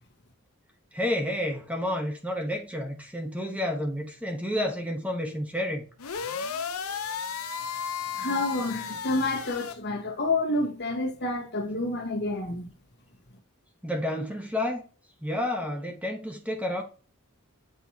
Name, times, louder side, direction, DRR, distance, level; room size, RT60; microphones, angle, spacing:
voice 1, 0.9-5.9 13.8-14.8 15.2-16.8, left 1 dB, 5° right, 0.9 m, -30 dB
sound 1, 6.0-9.7, left 6 dB, 75° left, 0.7 m, -34 dB
voice 2, 8.1-12.7, left 2 dB, 50° left, 1.4 m, -29 dB
8.1 x 4.5 x 2.8 m
head